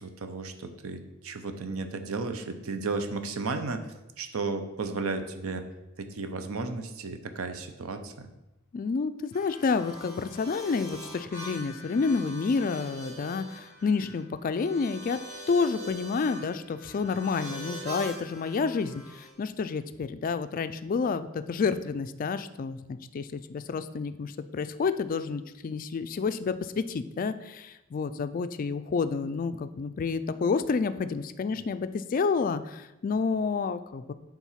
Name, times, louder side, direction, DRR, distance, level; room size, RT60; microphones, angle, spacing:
voice 1, 0.0-3.9 4.2-5.7 6.0-8.3, right 3 dB, 80° right, 8 dB, 0.6 m, -34 dB
voice 2, 8.7-15.2 15.5-34.1, left 5 dB, 40° left, 12 dB, 0.3 m, -29 dB
sound 1, 9.3-19.3, right 1 dB, 35° right, 1.7 m, -43 dB
7.3 x 3.8 x 5.7 m, 0.97 s
head